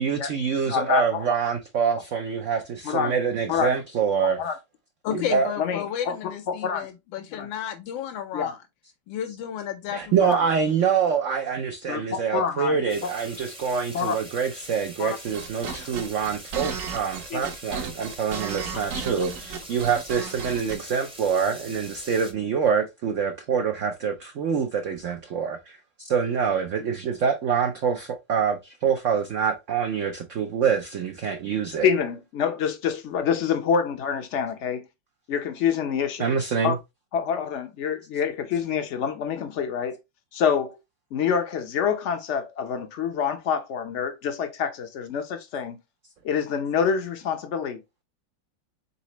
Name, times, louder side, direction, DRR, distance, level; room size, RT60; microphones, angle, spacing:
voice 1, 0.0-4.4 5.1-5.5 9.9-25.8 26.0-31.9 36.2-36.8, right 6 dB, 80° right, 0.6 m, -25 dB
voice 2, 0.7-1.2 2.8-3.1 3.5-3.8 4.2-4.6 5.1-5.3 5.6-6.9 7.3-7.5 8.3-8.5 10.2-10.4 11.9-13.1 13.9-14.1 15.0-15.2 15.7-15.8 17.3-17.5 31.8-34.9 35.3-36.3 36.6-36.8 37.1-40.0 40.3-40.8 41.1-45.8 46.2-47.8, left 7 dB, 60° left, 0.7 m, -27 dB
voice 3, 5.0-8.6 9.1-10.2, left 9 dB, 90° left, 1.4 m, -32 dB
sound 1, 12.9-22.3, right 1 dB, 5° right, 0.5 m, -43 dB
sound 2, 15.2-20.8, right 6 dB, 65° right, 1.1 m, -34 dB
4.1 x 4.0 x 2.9 m
omnidirectional pair, 2.0 m